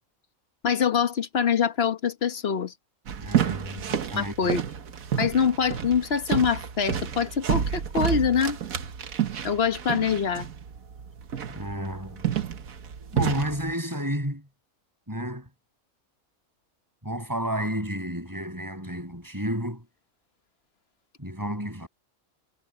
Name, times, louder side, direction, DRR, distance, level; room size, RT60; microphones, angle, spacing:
voice 1, 0.6-2.7 4.2-4.6 5.2-8.6 9.4-10.5, left 6 dB, 45° left, 1.4 m, -24 dB
sound 1, 3.1-13.7, right 8 dB, 75° right, 1.6 m, -30 dB
voice 2, 3.2-4.5 11.5-12.2 13.1-14.5 15.1-15.5 17.0-19.9 21.2-21.9, equal, 15° right, 8.1 m, -31 dB
omnidirectional pair, 1.5 m